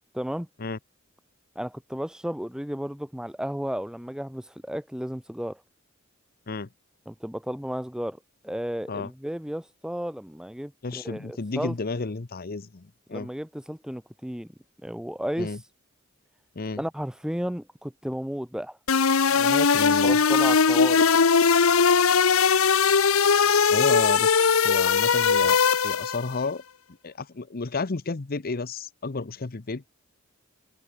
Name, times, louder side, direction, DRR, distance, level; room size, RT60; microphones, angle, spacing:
voice 1, 0.1-0.5 1.5-5.6 7.1-8.2 8.4-11.7 13.1-14.5 14.8-15.5 16.8-18.8 19.3-21.0, equal, 5° right, 1.1 m, -33 dB
voice 2, 10.8-13.3 15.4-15.6 16.6-16.8 19.7-20.2 23.7-25.6 25.8-26.6 27.0-29.9, left 3 dB, 45° left, 0.8 m, -32 dB
sound 1, 18.9-26.3, left 5 dB, 85° left, 0.9 m, -20 dB
head